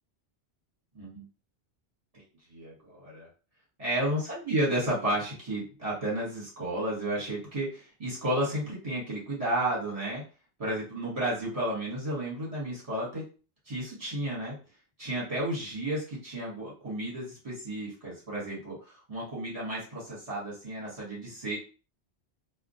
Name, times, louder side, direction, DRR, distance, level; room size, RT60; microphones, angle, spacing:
voice 1, 2.5-3.3 3.8-10.2 10.6-13.2 13.7-14.5 15.0-21.6, right 1 dB, 35° right, -6 dB, 1.1 m, -32 dB
2.2 x 2.1 x 2.6 m, 0.35 s
omnidirectional pair, 1.1 m